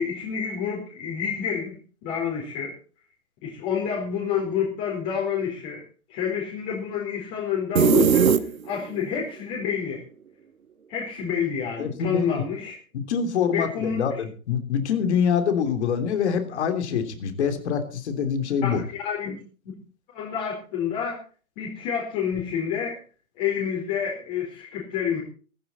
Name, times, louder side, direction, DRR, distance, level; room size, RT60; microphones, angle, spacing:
voice 1, 0.0-1.8 2.0-2.7 3.4-5.8 6.1-10.0 10.9-12.7 13.5-14.2 18.6-19.4 20.1-21.2 21.6-23.0 23.4-25.2, left 7 dB, 35° left, -3 dB, 4.6 m, -28 dB
sound 1, 7.8-9.0, right 7 dB, 70° right, 1.5 m, -19 dB
voice 2, 11.8-12.4 12.9-18.8, left 7 dB, 50° left, 8 dB, 3.2 m, -25 dB
15.5 x 15.0 x 4.3 m, 0.40 s
figure-of-eight pair, 120°, 42 cm